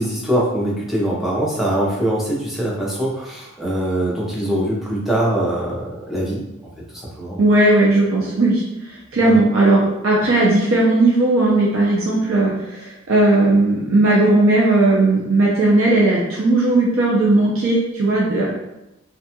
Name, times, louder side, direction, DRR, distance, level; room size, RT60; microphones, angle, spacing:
voice 1, 0.0-6.4 6.9-7.4 9.2-9.4, right 1 dB, ahead, -6 dB, 0.5 m, -22 dB
voice 2, 7.4-8.6 9.1-18.5, right 2 dB, 80° right, -4 dB, 0.5 m, -16 dB
2.4 x 2.2 x 2.8 m, 0.92 s
head